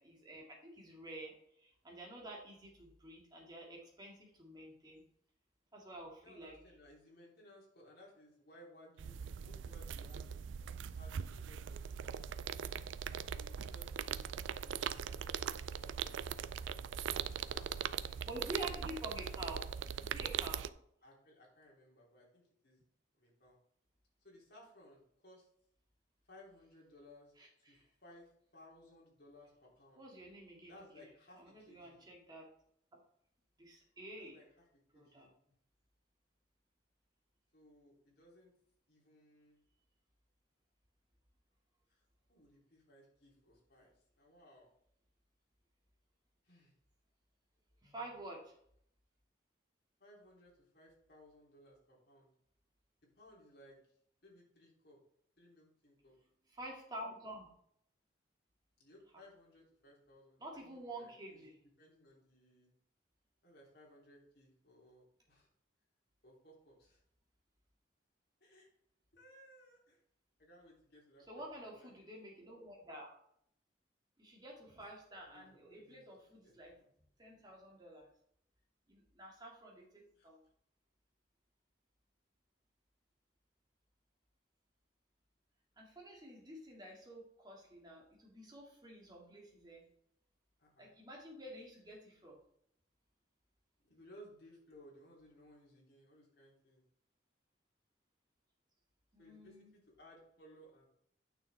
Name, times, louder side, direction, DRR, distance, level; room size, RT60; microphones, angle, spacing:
voice 1, 0.0-5.0 5.7-6.6 18.2-19.6 20.1-20.7 27.4-27.8 30.0-31.0 31.4-32.5 32.9-33.0 33.6-34.4 34.9-35.3 47.8-48.5 56.5-57.5 60.4-61.6 71.3-73.1 74.2-78.1 78.9-80.4 85.8-89.9 90.8-92.4 99.1-99.7, right 1 dB, 20° right, -2 dB, 2.3 m, -49 dB
voice 2, 6.2-10.4 10.9-12.4 13.3-14.3 14.6-16.5 17.5-19.3 21.0-22.8 23.1-23.6 24.2-25.5 26.3-27.3 27.7-30.0 30.7-32.0 34.2-34.6 34.9-35.3 37.5-38.5 38.9-39.6 41.9-42.0 42.3-44.7 46.4-46.7 50.0-52.3 53.1-53.8 54.2-55.0 55.4-56.1 58.8-61.4 61.8-62.7 63.4-65.5 66.2-67.0 68.4-68.7 69.1-70.0 70.4-71.9 74.8-74.9 75.3-76.1 76.4-76.9 80.2-80.3 90.6-90.9 93.8-96.8 99.2-100.9, left 1 dB, 55° left, -3 dB, 3.2 m, -61 dB
sound 1, 9.0-20.7, right 8 dB, 85° right, 0.4 m, -41 dB
9.4 x 6.2 x 3.5 m, 0.68 s
head